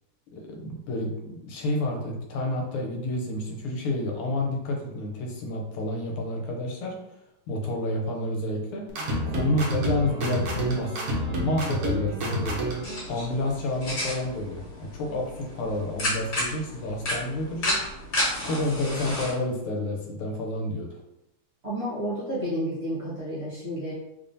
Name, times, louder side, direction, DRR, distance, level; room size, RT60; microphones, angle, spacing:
voice 1, 0.3-7.0 7.5-8.9 9.3-11.0 11.3-12.8 13.1-17.8 18.4-21.0, left 1 dB, 80° left, 1 dB, 1.6 m, -29 dB
sound 1, 8.9-13.0, equal, 65° right, 0.8 m, -29 dB
sound 2, 12.8-19.3, left 1 dB, 50° left, 1.9 m, -32 dB
voice 2, 21.6-23.9, equal, 35° right, -9 dB, 1.2 m, -31 dB
3.5 x 3.4 x 2.6 m, 0.88 s
omnidirectional pair, 2.4 m